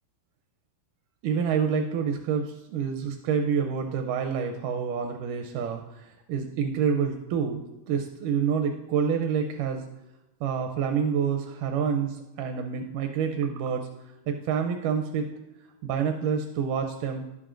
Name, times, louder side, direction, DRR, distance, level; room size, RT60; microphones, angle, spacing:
voice 1, 1.2-7.6 7.9-9.8 10.4-15.3 15.8-17.2, right 7 dB, 85° right, 4 dB, 2.2 m, -28 dB
15.5 x 5.5 x 2.5 m, 0.98 s
omnidirectional pair, 3.7 m